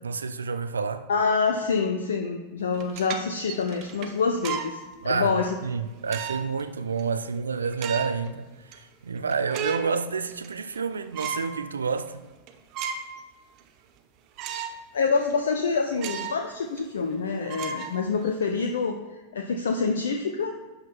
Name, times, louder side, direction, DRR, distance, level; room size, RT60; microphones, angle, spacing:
voice 1, 0.0-1.1 5.0-12.2, right 5 dB, 75° right, 0.5 m, -29 dB
voice 2, 1.1-5.6 14.9-19.0 19.3-20.5, left 5 dB, 65° left, 0.6 m, -26 dB
sound 1, 2.7-4.8 5.3-5.4 6.1-6.6 7.0-7.1 7.6-8.3 8.7-8.8 9.2-9.9 10.3-10.8 11.1-11.5 12.0-12.1 12.5-13.2 13.6-13.7 14.4-14.8 15.2-15.3 15.9-16.4 16.8-16.9 17.5-18.4, right 7 dB, 40° right, 0.9 m, -34 dB
11.0 x 5.2 x 4.5 m
figure-of-eight pair, 90°, 0 cm